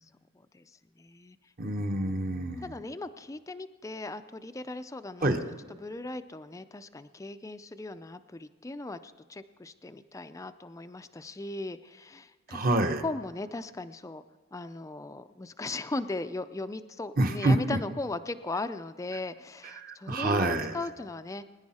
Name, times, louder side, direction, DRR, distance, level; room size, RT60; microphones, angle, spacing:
voice 1, 0.3-1.4 2.6-5.5 5.8-12.6 13.0-14.2 14.5-21.5, left 2 dB, 15° left, 10 dB, 0.4 m, -38 dB
voice 2, 1.6-2.7 5.2-5.4 12.5-13.0 17.2-17.8 19.6-20.7, right 2 dB, 40° right, 6 dB, 1.1 m, -27 dB
21.5 x 10.5 x 4.2 m, 1.5 s
head